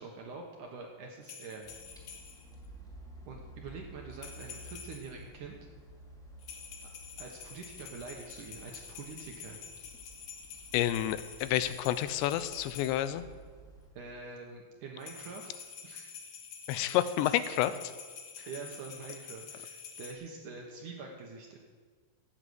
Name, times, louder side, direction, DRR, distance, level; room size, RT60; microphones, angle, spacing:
voice 1, 0.0-1.7 3.3-5.6 7.2-9.6 14.0-16.1 17.2-17.4 18.5-21.6, right 4 dB, 65° right, 1 dB, 2.1 m, -45 dB
sound 1, 1.2-2.5 4.1-5.2 6.4-13.1 15.0-20.1, left 6 dB, 60° left, 2.6 m, -48 dB
sound 2, 1.6-13.9, right 1 dB, ahead, 1.1 m, -53 dB
voice 2, 10.7-13.2 16.7-17.7, left 12 dB, 90° left, 13 dB, 2.9 m, -29 dB
14.0 x 9.1 x 8.0 m, 1.5 s
omnidirectional pair, 5.0 m